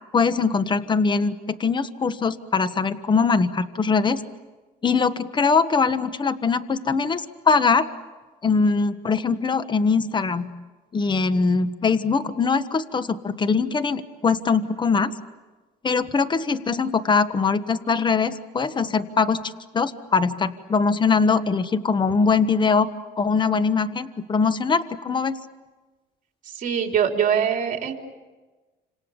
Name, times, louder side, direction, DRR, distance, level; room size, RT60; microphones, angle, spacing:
voice 1, 0.1-4.2 4.8-7.9 8.4-10.5 10.9-15.1 15.8-22.9 23.2-25.4, left 5 dB, 25° left, 12 dB, 1.3 m, -22 dB
voice 2, 26.5-27.9, right 8 dB, 50° right, 3 dB, 3.9 m, -22 dB
30.0 x 27.0 x 7.3 m, 1.3 s
cardioid pair, 110°, 17 cm